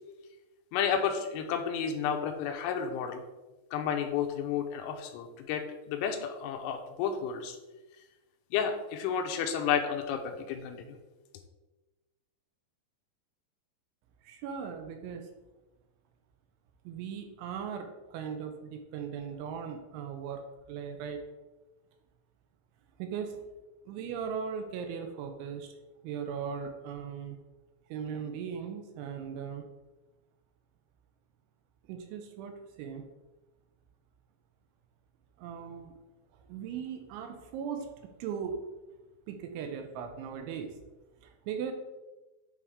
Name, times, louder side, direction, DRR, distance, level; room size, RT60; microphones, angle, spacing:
voice 1, 0.7-3.2 3.7-7.6 8.5-11.0, left 7 dB, 90° left, 4 dB, 3.2 m, -31 dB
voice 2, 14.2-15.3 16.9-20.4 20.7-21.2 23.0-23.5 23.9-25.7 26.0-27.4 27.9-29.7 31.9-33.1 35.4-35.9 36.5-38.6 39.3-40.7 41.2-41.7, right 7 dB, 85° right, 5 dB, 2.9 m, -38 dB
9.6 x 3.5 x 3.5 m, 1.1 s
omnidirectional pair, 5.7 m